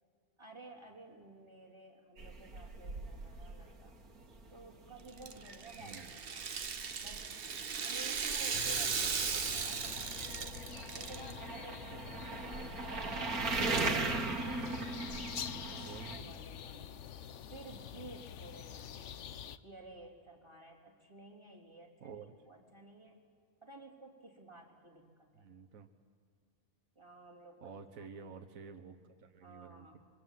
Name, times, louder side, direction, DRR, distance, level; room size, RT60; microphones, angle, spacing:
voice 1, 0.4-4.0 4.5-6.5 7.0-7.4 7.7-10.5 10.9-13.5 14.0-17.0 17.5-19.2 19.6-23.2 23.6-25.5 27.0-28.5 29.4-30.0, right 2 dB, 20° right, 0 dB, 3.5 m, -54 dB
sound 1, 2.2-16.2, right 3 dB, 90° right, 2.1 m, -40 dB
Rattle (instrument), 5.1-11.3, right 6 dB, 45° right, 1.1 m, -37 dB
sound 2, 8.5-19.6, left 9 dB, 60° left, 1.0 m, -46 dB
voice 2, 15.6-16.4 22.0-22.3 25.4-25.9 27.6-30.0, right 5 dB, 70° right, 6 dB, 1.6 m, -50 dB
26.0 x 23.5 x 7.6 m, 2.2 s
omnidirectional pair, 1.5 m